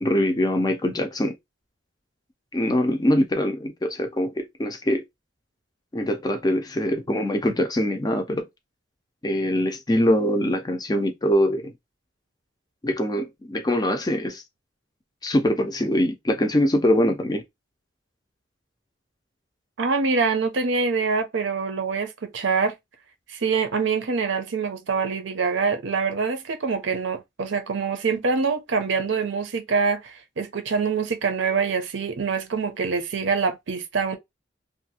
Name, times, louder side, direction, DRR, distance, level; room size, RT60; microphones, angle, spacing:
voice 1, 0.0-1.4 2.5-5.0 5.9-8.4 9.2-11.7 12.8-14.4 15.2-17.4, left 1 dB, 20° left, 0.4 m, -23 dB
voice 2, 19.8-22.7 23.3-34.2, right 5 dB, 80° right, 0.6 m, -25 dB
2.7 x 2.4 x 2.7 m
head